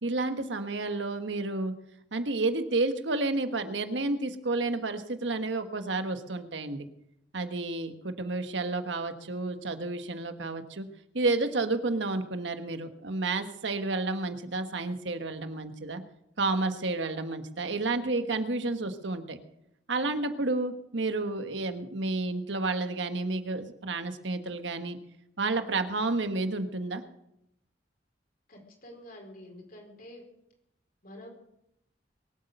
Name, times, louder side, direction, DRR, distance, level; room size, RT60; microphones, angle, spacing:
voice 1, 0.0-1.7 2.1-6.9 7.3-10.9 11.1-16.0 16.4-19.4 19.9-25.0 25.4-27.0, right 3 dB, 80° right, 8 dB, 1.4 m, -30 dB
voice 2, 28.5-30.2 31.0-31.3, left 1 dB, 50° left, 1 dB, 4.9 m, -48 dB
22.5 x 8.4 x 6.7 m, 0.80 s
head